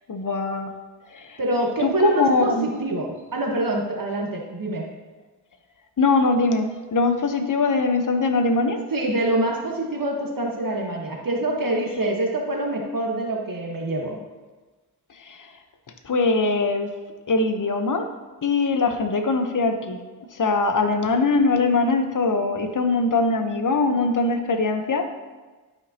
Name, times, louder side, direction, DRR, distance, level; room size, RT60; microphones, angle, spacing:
voice 1, 0.1-0.7 1.1-1.4 1.8-2.7 6.0-8.8 15.2-15.5 16.0-16.9 17.3-18.1 18.4-20.0 20.3-25.1, left 3 dB, 50° left, 6 dB, 1.0 m, -22 dB
voice 2, 1.4-4.9 8.9-14.2, right 1 dB, 55° right, 0 dB, 1.4 m, -25 dB
12.0 x 5.3 x 2.9 m, 1.3 s
cardioid pair, 60°, 41 cm